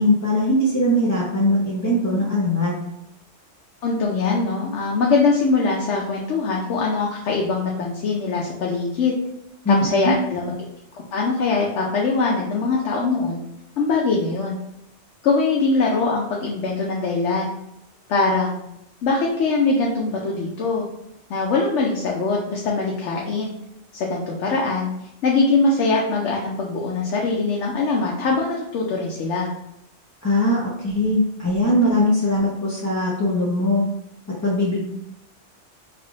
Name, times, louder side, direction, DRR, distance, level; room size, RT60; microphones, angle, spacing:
voice 1, 0.0-2.7 9.6-10.1 30.2-33.8 34.4-34.8, left 1 dB, 20° left, -7 dB, 0.5 m, -20 dB
voice 2, 3.8-9.1 9.7-10.5 10.9-13.4 13.8-14.6 15.2-17.5 18.1-18.6 19.0-20.9 21.3-23.5 23.9-24.9 25.2-29.5, left 3 dB, 85° left, -2 dB, 0.9 m, -22 dB
3.5 x 2.4 x 3.8 m, 0.82 s
omnidirectional pair, 1.2 m